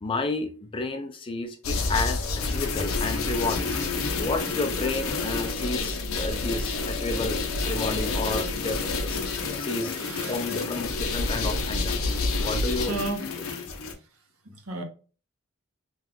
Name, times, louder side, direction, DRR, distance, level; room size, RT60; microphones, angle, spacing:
voice 1, 0.0-10.0 10.3-12.0 12.4-13.0, left 3 dB, 25° left, 0.4 m, -31 dB
sound 1, 1.6-13.9, left 3 dB, 70° left, 0.6 m, -29 dB
voice 2, 10.0-10.4 12.9-13.2 14.5-14.8, right 2 dB, 75° right, 0.8 m, -33 dB
2.7 x 2.3 x 3.5 m
head